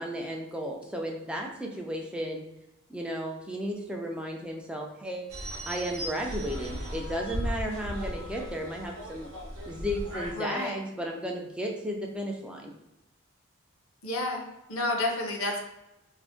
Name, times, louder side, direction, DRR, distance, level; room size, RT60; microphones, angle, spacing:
voice 1, 0.0-2.4 2.9-5.3 5.7-9.3 9.7-12.7, equal, 5° right, 1 dB, 0.3 m, -34 dB
sound 1, 5.3-10.3, equal, 65° right, 0.6 m, -36 dB
voice 2, 10.3-10.8 14.0-14.4 14.7-15.6, left 2 dB, 75° left, 1 dB, 0.6 m, -30 dB
2.5 x 2.1 x 3.5 m, 0.93 s
head